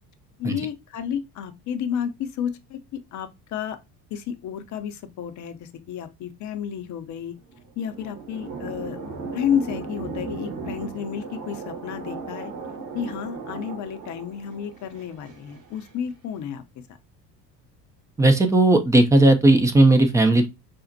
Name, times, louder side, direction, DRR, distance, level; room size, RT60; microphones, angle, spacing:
voice 1, 0.4-3.8 4.1-7.3 7.8-12.5 12.9-16.6, left 8 dB, 40° left, 0.6 m, -31 dB
sound 1, 7.4-15.9, right 4 dB, 40° right, 1.1 m, -37 dB
voice 2, 18.2-20.5, right 2 dB, 5° right, 0.4 m, -16 dB
5.1 x 2.1 x 2.6 m
hypercardioid pair, 65°, 48 cm